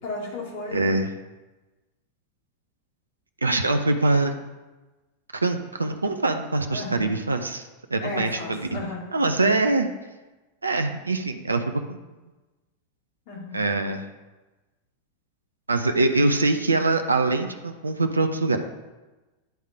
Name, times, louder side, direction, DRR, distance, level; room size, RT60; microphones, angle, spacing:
voice 1, 0.0-0.9 6.7-7.2 8.0-9.1 9.4-9.5 13.3-13.7, left 2 dB, 50° left, -2 dB, 2.0 m, -34 dB
voice 2, 0.7-1.1 3.4-4.3 5.3-8.8 9.1-9.9 10.6-12.0 13.5-14.0 15.7-18.6, right 2 dB, 80° right, 6 dB, 0.6 m, -23 dB
10.5 x 3.7 x 4.6 m, 1.1 s
figure-of-eight pair, 90°, 0 cm